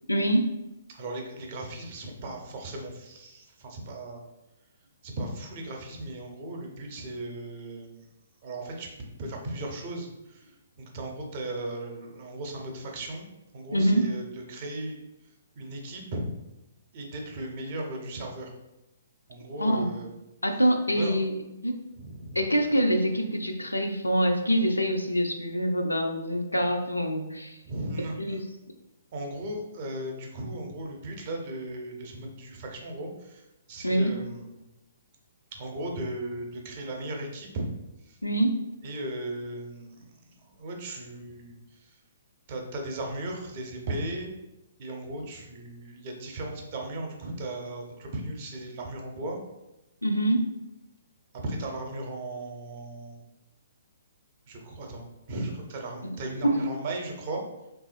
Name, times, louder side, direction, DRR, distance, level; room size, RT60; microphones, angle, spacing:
voice 1, 0.1-0.5 13.7-14.1 19.6-19.9 20.4-21.3 21.6-21.8 22.3-27.6 28.2-28.4 33.8-34.1 38.2-38.6 50.0-50.4 56.0-56.1 56.4-56.7, equal, 85° left, 5 dB, 0.3 m, -25 dB
voice 2, 0.9-4.2 5.0-8.1 8.4-8.9 9.2-13.3 13.5-15.0 15.2-16.2 16.9-18.5 19.3-20.1 20.9-21.2 21.9-22.5 27.6-28.4 29.1-34.6 35.5-37.7 38.0-38.2 38.8-42.0 42.5-44.3 44.8-49.4 51.3-53.2 54.5-57.4, right 1 dB, 40° right, 2 dB, 0.6 m, -37 dB
3.1 x 2.4 x 2.5 m, 0.94 s
figure-of-eight pair, 125°, 0 cm